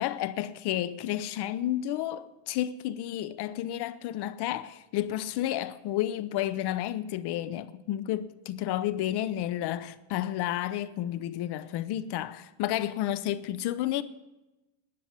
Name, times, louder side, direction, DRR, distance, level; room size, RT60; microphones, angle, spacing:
voice 1, 0.0-14.0, left 13 dB, 55° left, 0.7 m, -31 dB
12.5 x 8.8 x 9.6 m
cardioid pair, 130°, 47 cm